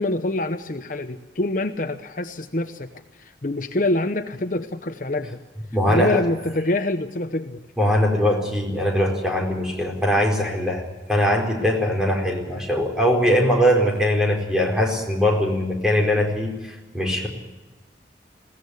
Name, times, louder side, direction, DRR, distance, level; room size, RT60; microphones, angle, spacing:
voice 1, 0.0-2.9 3.2-5.4 5.9-7.6, left 2 dB, 50° left, 8 dB, 1.0 m, -25 dB
voice 2, 5.7-6.2 7.8-17.3, equal, 5° right, 0 dB, 4.5 m, -21 dB
21.0 x 17.0 x 8.2 m, 1.1 s
head